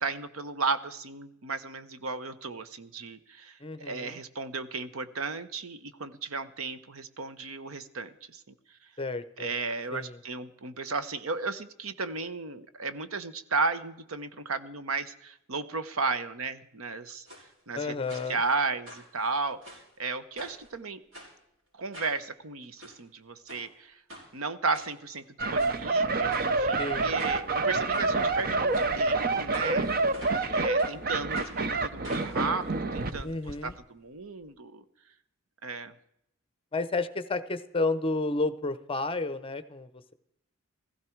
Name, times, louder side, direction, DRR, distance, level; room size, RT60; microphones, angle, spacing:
voice 1, 0.0-8.4 9.4-17.3 17.7-21.0 21.8-24.0 24.3-25.2 25.5-29.9 30.5-32.7 32.9-34.8 35.6-35.9, right 4 dB, 85° right, 12 dB, 1.0 m, -34 dB
voice 2, 3.6-4.2 9.0-9.5 9.9-10.2 17.7-18.4 26.8-27.2 33.2-33.7 36.7-40.1, left 3 dB, 25° left, 13 dB, 0.7 m, -31 dB
sound 1, 17.3-17.4 18.1-18.5 18.8-19.9 20.4-20.7 21.1-21.3 21.9-22.2 22.6-22.9 23.5-23.6 24.1-24.3 24.7-25.2 25.6-25.8 26.3-26.5 27.2-27.4 27.9-28.0 28.7-28.9 29.5-30.5 30.8-30.9 31.3-31.6 32.0-33.6 33.9-34.0 34.2-34.3, equal, 60° right, 6.2 m, -45 dB
sound 2, 25.4-33.2 33.5-33.7, right 3 dB, 45° right, 0.7 m, -27 dB
16.0 x 15.5 x 4.6 m, 0.81 s
head